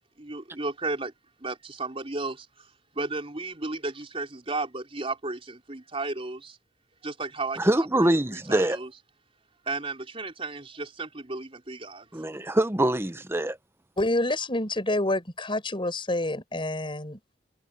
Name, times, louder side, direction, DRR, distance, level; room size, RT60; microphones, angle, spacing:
voice 1, 0.2-1.1 1.4-2.5 2.9-6.6 7.0-8.9 9.7-12.1, right 3 dB, 30° right, 3.7 m, -34 dB
voice 2, 7.6-8.8 12.1-13.6, right 1 dB, 15° right, 0.9 m, -24 dB
voice 3, 14.0-17.2, left 1 dB, 30° left, 5.0 m, -28 dB
head